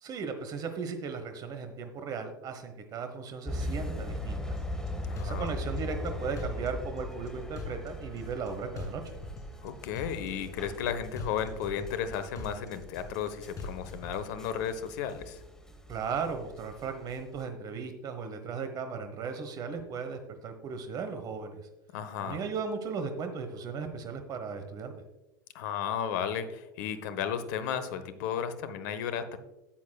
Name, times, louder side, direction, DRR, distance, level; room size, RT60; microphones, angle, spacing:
voice 1, 0.0-4.6 5.2-9.0 15.9-21.6 22.2-24.9, right 5 dB, 35° right, 7 dB, 1.2 m, -36 dB
sound 1, 3.4-17.4, left 1 dB, 5° left, 1.6 m, -40 dB
sound 2, 4.6-4.9 5.2-6.1 6.4-7.3 7.6-8.5 8.8-9.7 10.0-10.9 11.2-12.1 12.4-13.3 13.6-14.2, left 3 dB, 30° left, 2.3 m, -42 dB
voice 2, 5.0-5.5 9.6-15.4 21.9-22.5 25.5-29.4, left 8 dB, 60° left, 11 dB, 1.0 m, -34 dB
13.0 x 8.4 x 2.3 m, 0.97 s
hypercardioid pair, 85°, 11 cm